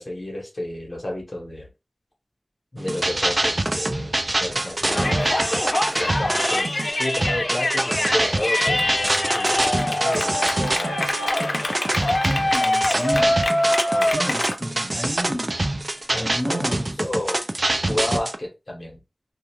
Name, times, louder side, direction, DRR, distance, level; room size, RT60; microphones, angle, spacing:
voice 1, 0.0-1.7 2.7-5.1 6.0-10.9 13.9-14.2 16.1-16.6 17.0-17.4 17.8-19.0, left 1 dB, 45° left, 0.9 m, -31 dB
sound 1, 2.8-18.4, right 1 dB, 45° right, 0.4 m, -25 dB
Yell, 4.9-14.6, left 1 dB, 65° left, 0.5 m, -24 dB
voice 2, 12.3-13.4 14.0-15.6 16.1-17.0, equal, 10° left, 0.8 m, -31 dB
2.4 x 2.3 x 2.9 m
wide cardioid pair, 55°, 0 cm